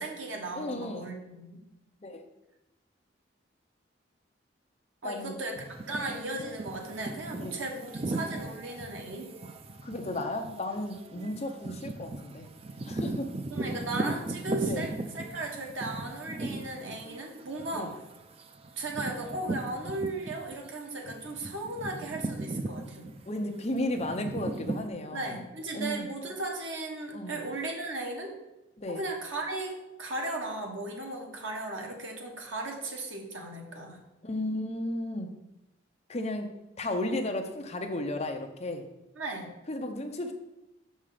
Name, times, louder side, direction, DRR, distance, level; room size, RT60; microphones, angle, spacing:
voice 1, 0.0-1.6 5.0-9.3 13.5-17.9 18.8-23.1 25.1-28.3 28.9-34.0 39.2-39.5, right 2 dB, 80° right, 1 dB, 1.4 m, -36 dB
voice 2, 0.5-1.2 2.0-2.3 5.0-5.3 7.3-7.6 9.8-12.5 12.9-13.3 14.6-14.8 17.7-17.9 23.3-25.4 25.7-26.1 27.1-27.4 28.8-29.0 34.2-35.3 36.1-38.8 39.7-40.3, left 1 dB, 35° left, 4 dB, 0.7 m, -34 dB
sound 1, 5.6-20.7 21.1-24.9, right 2 dB, 30° right, 0.4 m, -37 dB
5.7 x 5.5 x 5.0 m, 0.96 s
head